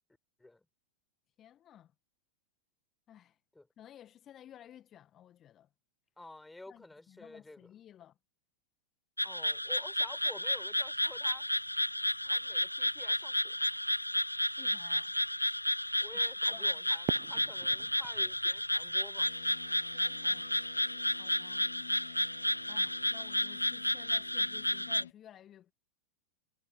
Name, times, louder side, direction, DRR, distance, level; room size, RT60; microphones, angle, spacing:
voice 1, 1.4-1.9 3.1-3.4 3.8-5.7 6.7-8.1 14.6-15.2 16.5-16.8 19.8-20.5 21.1-21.7 22.7-25.7, left 11 dB, 30° left, 1.8 m, -56 dB
voice 2, 6.2-7.7 9.2-11.5 12.2-13.9 16.0-19.3, left 2 dB, 5° left, 5.5 m, -51 dB
sound 1, 9.2-25.0, left 1 dB, 90° left, 0.4 m, -32 dB
Fireworks, 17.1-20.1, right 23 dB, 40° right, 0.9 m, -43 dB
sound 2, 19.2-25.1, left 9 dB, 65° left, 4.7 m, -52 dB
figure-of-eight pair, 90°, 0 cm